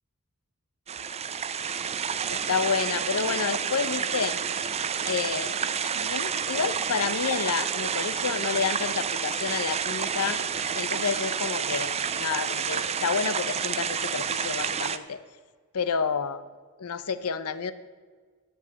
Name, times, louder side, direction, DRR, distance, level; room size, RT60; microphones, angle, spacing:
sound 1, 0.9-15.0, right 7 dB, 30° right, 0.4 m, -29 dB
voice 1, 2.3-4.4 5.0-5.6 5.9-10.4 10.7-15.2 15.7-16.4 16.8-17.7, left 6 dB, 80° left, 13 dB, 0.7 m, -29 dB
10.5 x 7.3 x 8.2 m, 1.5 s
head